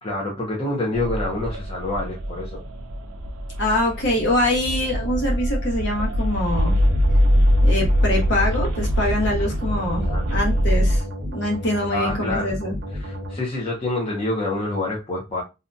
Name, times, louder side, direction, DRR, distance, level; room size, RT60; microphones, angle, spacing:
voice 1, 0.0-2.6 10.0-10.3 11.9-12.6 13.0-15.4, left 2 dB, 25° left, 0.6 m, -27 dB
sound 1, 0.9-11.0, equal, 85° right, 0.6 m, -22 dB
voice 2, 3.6-6.8 7.6-12.7, left 1 dB, 55° left, 1.0 m, -24 dB
sound 2, 6.5-13.3, equal, 45° right, 0.7 m, -32 dB
2.7 x 2.2 x 2.5 m
head